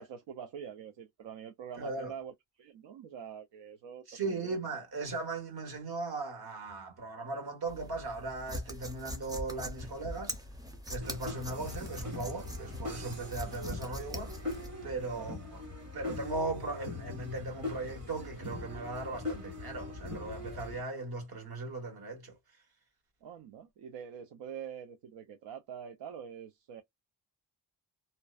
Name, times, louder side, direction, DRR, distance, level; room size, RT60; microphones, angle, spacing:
voice 1, 0.0-4.6 15.1-15.4 23.2-26.8, right 8 dB, 75° right, 0.5 m, -45 dB
voice 2, 1.8-2.1 4.1-10.4 10.9-14.3 14.8-15.6 15.9-22.3, right 3 dB, 55° right, 1.4 m, -38 dB
sound 1, 7.7-14.7, equal, 10° right, 0.5 m, -42 dB
sound 2, 11.0-20.8, left 2 dB, 35° right, 1.4 m, -42 dB
2.5 x 2.1 x 2.3 m
wide cardioid pair, 145°, 44 cm